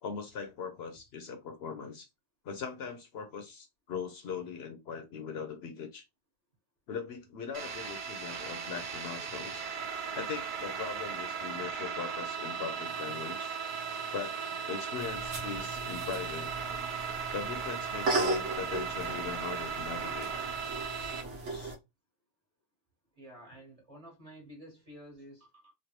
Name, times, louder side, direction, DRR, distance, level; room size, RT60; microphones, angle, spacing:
voice 1, 0.0-2.1 2.4-6.0 6.9-9.7 10.1-13.5 14.1-14.4 14.7-16.5 17.3-20.3 21.4-21.7, left 6 dB, 65° left, 0.8 m, -40 dB
sound 1, 7.5-21.2, right 6 dB, 55° right, 0.6 m, -37 dB
sound 2, 14.9-21.7, right 2 dB, 75° right, 1.2 m, -37 dB
voice 2, 23.2-25.7, equal, 30° right, 1.2 m, -51 dB
3.2 x 2.2 x 2.8 m
omnidirectional pair, 1.2 m